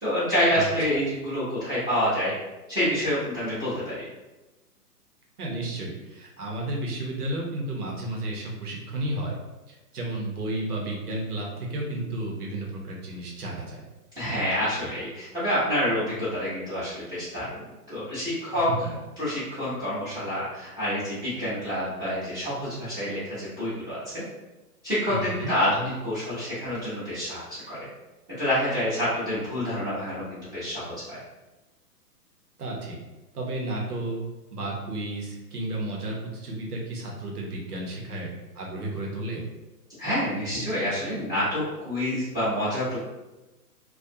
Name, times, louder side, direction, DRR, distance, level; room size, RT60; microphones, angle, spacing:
voice 1, 0.0-2.3 2.7-4.1 14.1-18.7 19.2-24.2 24.8-27.9 28.3-31.2 40.0-43.0, equal, 10° right, -15 dB, 0.7 m, -28 dB
voice 2, 5.4-9.4 9.7-13.9 18.8-18.9 25.1-25.5 32.6-33.0 33.3-34.2 34.5-38.3 38.5-39.4, right 1 dB, 70° right, -1 dB, 1.0 m, -32 dB
2.4 x 2.4 x 2.7 m, 1.1 s
figure-of-eight pair, 125°, 47 cm